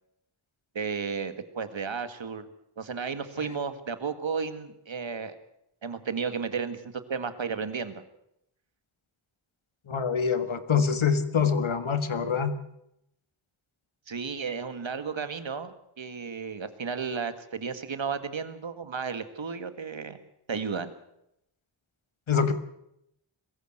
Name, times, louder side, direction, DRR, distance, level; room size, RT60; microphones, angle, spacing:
voice 1, 0.8-2.5 2.8-5.4 5.8-6.8 7.1-8.0 14.1-20.2 20.5-20.9, right 5 dB, 70° right, 10 dB, 2.0 m, -33 dB
voice 2, 9.9-12.5 22.3-22.5, left 6 dB, 75° left, 10 dB, 1.8 m, -25 dB
22.0 x 15.0 x 7.9 m, 0.80 s
cardioid pair, 55°, 48 cm